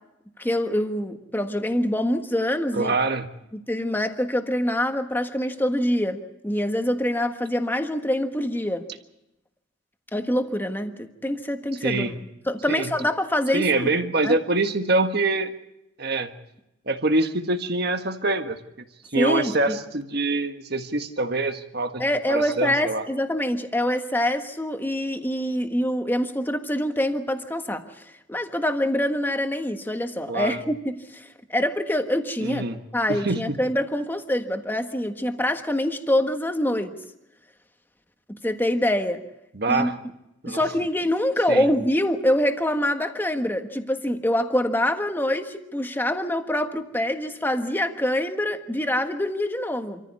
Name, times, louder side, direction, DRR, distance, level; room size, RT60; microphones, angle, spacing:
voice 1, 0.4-3.0 3.5-8.9 10.1-12.1 12.5-13.9 14.2-14.4 19.1-19.8 22.0-27.8 28.3-32.6 32.9-36.9 38.3-39.2 39.7-39.9 40.5-50.0, left 1 dB, 10° left, 6 dB, 1.4 m, -25 dB
voice 2, 2.7-3.3 11.8-12.1 12.7-12.9 13.5-15.5 16.0-16.3 16.9-18.6 19.1-22.0 22.3-23.0 30.3-30.6 32.4-32.8 33.1-33.4 39.5-39.9 40.4-40.6 41.5-41.7, right 2 dB, 55° right, 7 dB, 1.6 m, -24 dB
26.5 x 14.5 x 8.3 m, 0.89 s
head